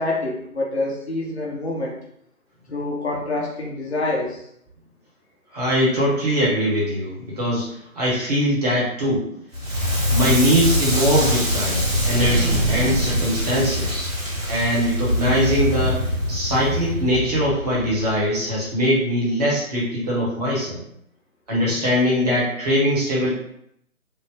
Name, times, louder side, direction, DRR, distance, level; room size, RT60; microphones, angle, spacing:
voice 1, 0.0-1.9 2.7-4.4, left 2 dB, 50° left, -2 dB, 0.9 m, -26 dB
voice 2, 5.5-9.2 10.1-14.1 14.5-16.0 16.3-20.8 21.5-23.3, equal, 30° right, -6 dB, 1.0 m, -22 dB
Crackle, 9.5-18.5, equal, 45° right, 1.4 m, -23 dB
3.3 x 2.0 x 3.3 m, 0.72 s
figure-of-eight pair, 145°, 43 cm